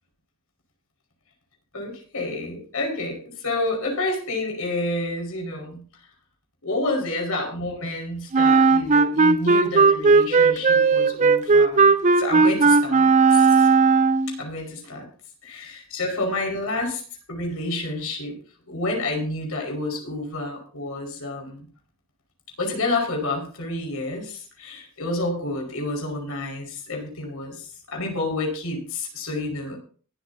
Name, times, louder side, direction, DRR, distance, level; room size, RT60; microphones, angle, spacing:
voice 1, 1.7-5.8 6.6-13.7 14.3-15.1 15.4-17.0 17.3-18.4 18.7-21.7 22.6-29.8, left 2 dB, 80° left, 1 dB, 5.2 m, -29 dB
Wind instrument woodwind instrument, 8.3-14.4, right 4 dB, 35° right, 0.6 m, -17 dB
23.0 x 8.4 x 2.8 m, 0.42 s
head